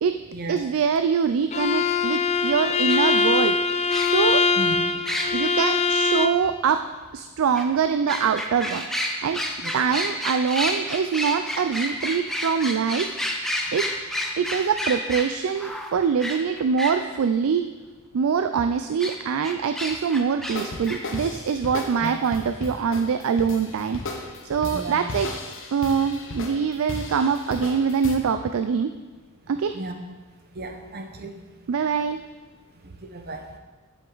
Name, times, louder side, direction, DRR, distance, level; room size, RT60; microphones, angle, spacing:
voice 1, 0.5-3.6 4.0-4.4 5.3-6.8 7.1-8.8 9.2-9.4 9.7-13.1 13.7-13.9 14.4-17.6 18.1-24.0 24.4-25.3 25.7-28.9 29.5-29.8 31.7-32.2, right 6 dB, 65° right, 8 dB, 0.4 m, -24 dB
Bowed string instrument, 1.5-6.4, left 4 dB, 30° left, 0.3 m, -22 dB
sound 1, 2.9-3.0 3.9-4.3 5.1-5.3 7.6-7.7 8.1-16.9 19.0-19.2 19.4-20.6 20.9-21.0, equal, ahead, 0.8 m, -29 dB
voice 2, 9.6-10.0 22.0-22.1 24.7-25.0 29.7-30.0 30.5-31.3 32.8-33.4, right 2 dB, 45° right, 5 dB, 0.9 m, -34 dB
sound 2, 20.5-28.2, left 3 dB, 60° left, 1.0 m, -35 dB
9.8 x 7.7 x 3.9 m, 1.3 s
head